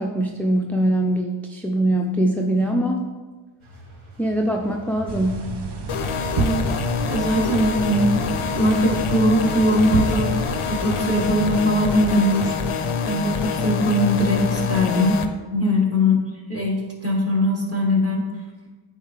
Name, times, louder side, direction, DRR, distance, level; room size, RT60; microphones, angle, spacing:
voice 1, 0.0-3.0 4.2-5.5 15.6-15.8, right 1 dB, 5° left, 0 dB, 0.4 m, -22 dB
sound 1, 3.6-12.0, right 1 dB, 75° right, 1.1 m, -42 dB
sound 2, 5.1-11.4, right 4 dB, 55° right, 0.6 m, -30 dB
sound 3, 5.9-15.3, left 6 dB, 85° left, 0.6 m, -26 dB
voice 2, 7.1-8.2 8.5-10.3 10.7-12.6 13.0-16.2 16.5-18.2, equal, 30° right, -2 dB, 1.4 m, -21 dB
8.3 x 3.7 x 3.3 m, 1.3 s
wide cardioid pair, 55°, 49 cm